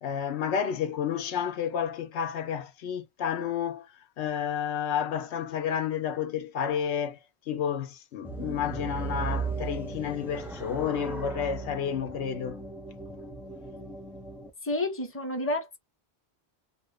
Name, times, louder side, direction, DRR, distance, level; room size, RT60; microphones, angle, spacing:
voice 1, 0.0-3.9 4.2-7.2 7.5-12.6, left 8 dB, 85° left, 0.9 m, -31 dB
sound 1, 8.2-14.5, right 3 dB, 5° right, 0.3 m, -36 dB
voice 2, 14.6-15.8, left 1 dB, 15° left, 0.8 m, -30 dB
2.5 x 2.5 x 3.2 m
omnidirectional pair, 1.1 m